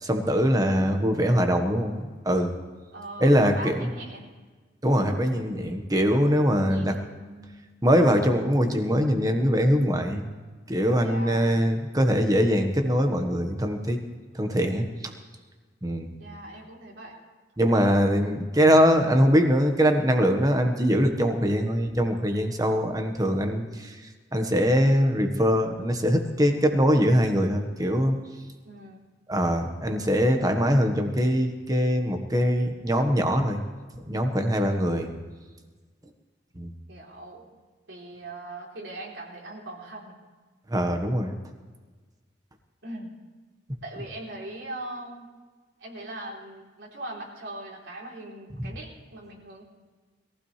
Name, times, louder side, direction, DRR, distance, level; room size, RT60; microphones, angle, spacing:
voice 1, 0.0-2.5 3.2-3.9 4.8-6.9 7.8-10.3 10.7-14.0 14.3-14.8 15.8-16.1 17.6-23.9 24.3-28.2 29.3-33.6 34.1-35.1 36.6-36.7 40.7-41.3, equal, 20° right, 5 dB, 1.4 m, -22 dB
voice 2, 2.9-4.2 6.6-7.6 11.0-11.5 16.2-17.2 28.6-29.1 34.5-35.0 36.9-37.5 37.9-40.2 42.8-43.2 43.8-45.3 45.8-49.6, right 1 dB, 80° right, -3 dB, 3.5 m, -40 dB
21.5 x 15.5 x 3.3 m, 1.4 s
head